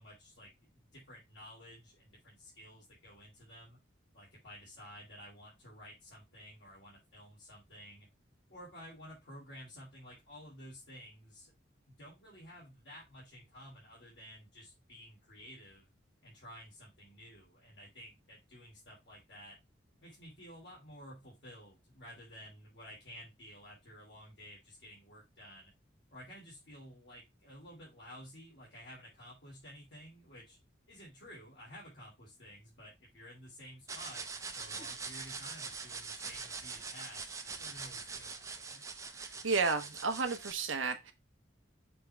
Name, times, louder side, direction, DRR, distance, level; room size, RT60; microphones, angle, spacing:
voice 1, 0.0-3.8 4.1-8.1 8.5-11.5 11.9-15.9 16.2-19.6 20.0-25.7 26.1-30.6 30.9-34.2 34.5-38.8, equal, 60° left, 3.2 m, -53 dB
sound 1, 33.9-40.5, right 4 dB, 15° right, 0.7 m, -43 dB
voice 2, 39.2-41.1, right 4 dB, 85° right, 1.2 m, -32 dB
6.8 x 3.7 x 4.5 m
head